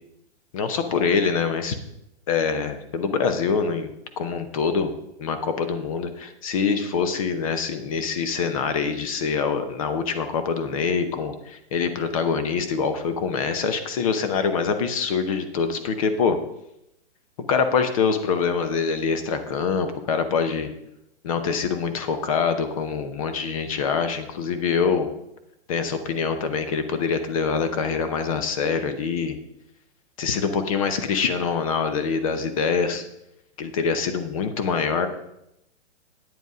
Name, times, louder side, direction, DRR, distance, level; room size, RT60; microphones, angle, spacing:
voice 1, 0.5-1.7 2.3-4.9 5.2-16.4 17.5-20.7 21.2-25.1 25.7-29.4 30.2-33.0 33.6-35.1, left 5 dB, 30° left, 9 dB, 0.8 m, -25 dB
9.5 x 8.0 x 4.9 m, 0.83 s
hypercardioid pair, 175°, 35 cm